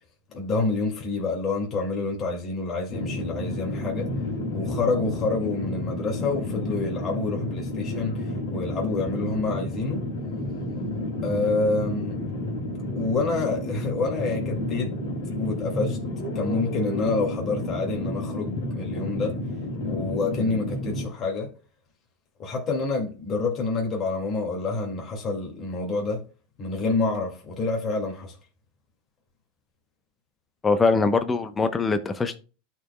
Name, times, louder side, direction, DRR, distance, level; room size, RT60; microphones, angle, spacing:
voice 1, 0.3-4.1 4.5-10.1 11.2-12.2 13.0-15.0 15.3-16.0 16.3-19.3 19.8-21.5 22.4-26.2 26.6-28.4, left 3 dB, 35° left, 2.1 m, -28 dB
sound 1, 2.9-21.1, left 1 dB, 75° left, 2.1 m, -31 dB
voice 2, 30.6-32.4, left 4 dB, 20° left, 0.7 m, -22 dB
12.5 x 4.6 x 2.2 m
hypercardioid pair, 100°, 0 cm